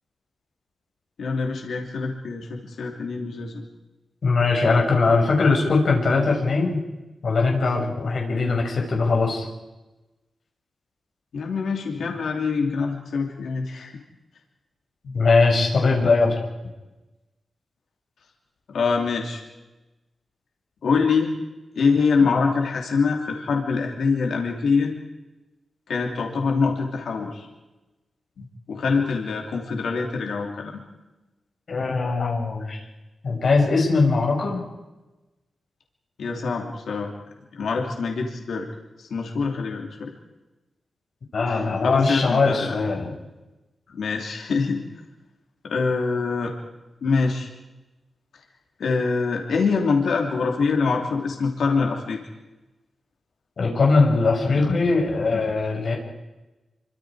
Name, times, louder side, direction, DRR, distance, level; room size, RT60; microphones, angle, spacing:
voice 1, 1.2-3.6 11.3-14.0 15.0-15.1 18.7-19.4 20.8-21.3 21.7-24.9 25.9-27.5 28.4-30.8 36.2-37.1 37.5-38.7 39.0-40.1 41.5-42.7 43.9-44.8 45.6-46.5 47.0-47.5 48.8-52.2, left 4 dB, 80° left, 1 dB, 3.0 m, -24 dB
voice 2, 4.2-6.8 7.2-9.5 15.1-16.3 31.7-32.8 33.2-34.6 41.3-43.1 53.6-56.0, left 3 dB, 50° left, -1 dB, 5.9 m, -20 dB
28.0 x 24.5 x 5.0 m, 1.1 s
wide cardioid pair, 165°, 0 cm